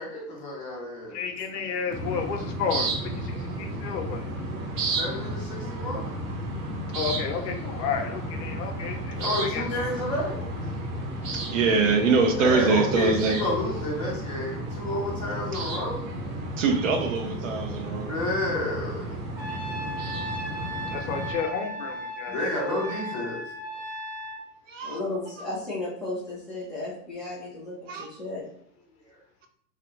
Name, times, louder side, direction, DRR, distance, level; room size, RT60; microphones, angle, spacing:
voice 1, 0.0-1.2 4.8-6.1 9.1-10.8 12.4-16.1 18.0-19.2 22.3-23.4 29.1-29.2, left 1 dB, 20° left, -5 dB, 0.5 m, -30 dB
voice 2, 1.1-4.2 6.9-9.6 11.7-11.8 20.9-22.3, left 6 dB, 80° left, 5 dB, 0.8 m, -32 dB
sound 1, 1.9-21.4, right 1 dB, 85° right, 1.0 m, -33 dB
voice 3, 11.3-13.4 16.6-18.1 19.5-19.6 24.7-25.0 27.9-28.1, right 4 dB, 55° right, 5 dB, 0.5 m, -24 dB
Trumpet, 19.4-24.4, right 1 dB, 25° right, 1.0 m, -36 dB
voice 4, 24.8-28.4, left 2 dB, ahead, -10 dB, 0.8 m, -34 dB
3.1 x 2.4 x 2.9 m, 0.68 s
supercardioid pair, 165°, 47 cm